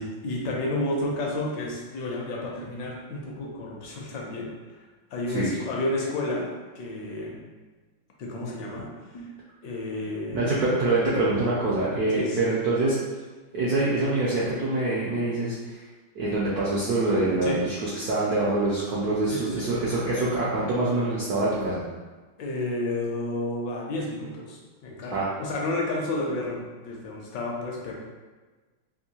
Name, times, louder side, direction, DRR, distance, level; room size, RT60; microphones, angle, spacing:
voice 1, 0.0-4.5 5.1-6.5 6.7-7.4 8.2-9.3 9.6-10.5 12.1-12.5 17.4-17.6 19.3-19.7 22.4-27.9, left 2 dB, 70° left, -2 dB, 1.1 m, -31 dB
voice 2, 10.3-13.0 13.5-15.7 16.1-21.8 25.1-25.3, right 2 dB, 75° right, -7 dB, 0.8 m, -25 dB
3.6 x 2.6 x 2.8 m, 1.3 s
omnidirectional pair, 2.2 m